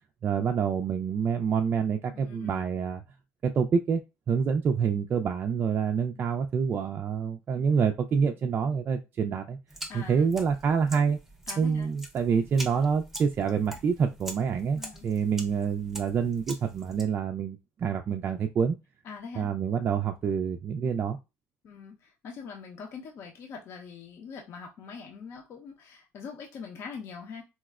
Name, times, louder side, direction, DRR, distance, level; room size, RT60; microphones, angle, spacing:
voice 1, 0.2-3.0 3.4-4.0 4.3-9.6 9.9-11.2 11.6-18.8 19.4-21.2, right 6 dB, 40° right, 5 dB, 0.3 m, -27 dB
voice 2, 2.1-2.6 9.9-10.3 11.5-11.9 14.7-15.1 19.0-19.5 21.6-27.4, left 5 dB, 55° left, 1 dB, 0.7 m, -43 dB
sound 1, 9.7-17.0, right 1 dB, 5° right, 0.7 m, -43 dB
4.2 x 2.1 x 2.3 m, 0.25 s
cardioid pair, 115°, 5 cm